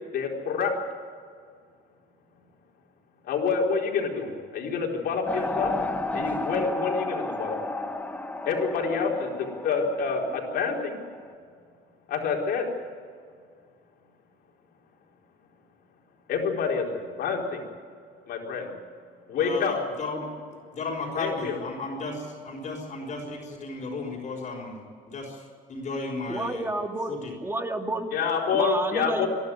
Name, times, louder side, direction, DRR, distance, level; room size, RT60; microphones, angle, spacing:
voice 1, 0.1-0.7 3.3-5.8 6.1-7.6 8.4-11.0 12.1-12.7 16.3-17.6 18.3-18.7 19.3-19.7 21.2-21.6 28.1-29.3, left 5 dB, 65° left, 0 dB, 4.5 m, -27 dB
sound 1, 5.3-11.3, left 2 dB, 10° left, 1.4 m, -33 dB
voice 2, 19.3-20.3 20.7-25.4 25.7-26.7 27.1-27.3, left 3 dB, 45° left, -4 dB, 5.3 m, -34 dB
voice 3, 26.3-27.2 27.4-28.1 28.5-29.3, right 2 dB, 15° right, 4 dB, 2.3 m, -30 dB
27.0 x 12.0 x 9.5 m, 2.1 s
cardioid pair, 110°, 17 cm